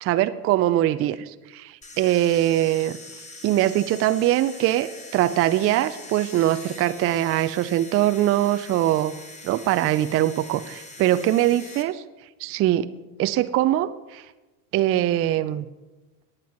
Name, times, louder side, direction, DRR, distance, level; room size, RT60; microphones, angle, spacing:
voice 1, 0.0-3.0 3.4-9.1 9.4-12.0 12.4-12.9 13.2-14.2 14.7-15.7, right 13 dB, 30° right, 12 dB, 0.4 m, -22 dB
sound 1, 1.8-11.8, left 2 dB, 15° left, 1.4 m, -43 dB
18.5 x 8.9 x 3.0 m, 1.1 s
hypercardioid pair, 80°, 48 cm